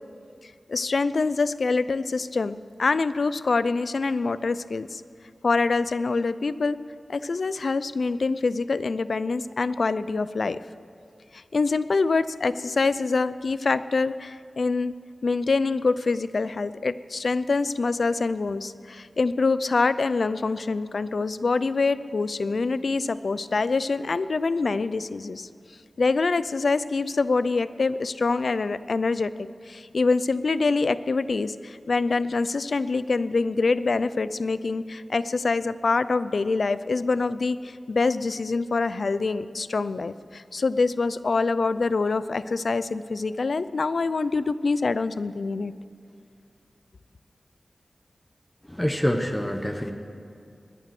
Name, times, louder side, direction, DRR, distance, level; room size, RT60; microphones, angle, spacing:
voice 1, 0.4-5.0 5.4-6.8 7.1-10.6 11.3-14.9 15.2-25.5 26.0-45.7, left 3 dB, 70° left, 15 dB, 0.5 m, -25 dB
voice 2, 48.7-49.9, equal, 15° left, 4 dB, 1.1 m, -26 dB
20.5 x 11.0 x 6.0 m, 2.4 s
wide cardioid pair, 60°, 0 cm